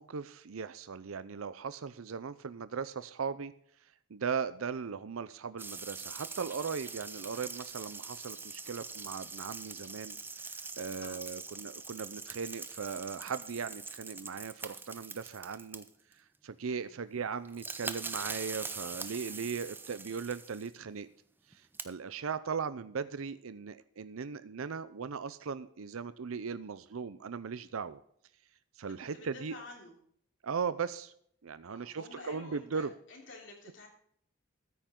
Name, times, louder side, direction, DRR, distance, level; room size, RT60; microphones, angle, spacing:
voice 1, 0.0-3.5 4.1-15.8 16.1-21.1 21.5-28.0 28.8-29.5 30.4-31.1 31.4-32.9, right 6 dB, 90° right, 14 dB, 0.6 m, -38 dB
sound 1, 5.6-16.1 17.2-17.3 17.4-20.7 21.5-21.8, right 4 dB, 10° right, 0.5 m, -43 dB
voice 2, 29.0-30.0 31.7-33.9, left 2 dB, 65° left, 0 dB, 3.2 m, -50 dB
13.5 x 9.3 x 3.7 m, 0.66 s
head